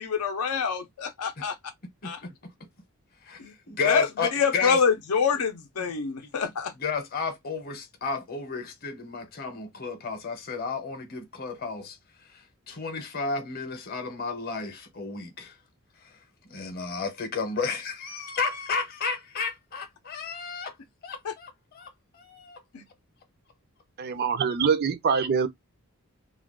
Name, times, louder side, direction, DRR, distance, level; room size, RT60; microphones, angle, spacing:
voice 1, 0.0-1.5 2.0-2.2 3.4-3.5 3.8-4.1 4.3-6.7 21.2-21.3 22.7-22.8, left 6 dB, 90° left, 0.5 m, -26 dB
voice 2, 2.0-2.3 3.2-4.8 6.3-6.4 6.8-12.0 12.3-15.5 16.5-20.7 21.0-22.6, left 5 dB, 45° left, 0.7 m, -32 dB
voice 3, 24.0-25.5, right 6 dB, 45° right, 0.4 m, -24 dB
2.3 x 2.2 x 3.6 m
head